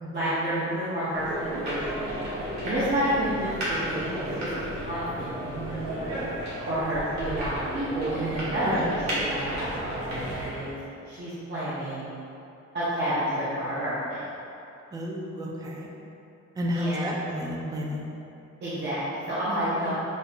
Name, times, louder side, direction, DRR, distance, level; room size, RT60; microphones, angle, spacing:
voice 1, 0.1-2.1 2.6-4.5 4.8-6.0 6.7-10.8 11.0-12.1 12.7-14.3 16.7-17.1 18.6-19.9, right 1 dB, 35° right, -11 dB, 0.7 m, -29 dB
sound 1, 1.1-10.5, right 1 dB, 65° right, 1.3 m, -33 dB
voice 2, 14.9-15.9 16.6-18.1, equal, 15° right, -1 dB, 0.3 m, -31 dB
6.2 x 2.6 x 2.5 m, 2.8 s
wide cardioid pair, 175°, 29 cm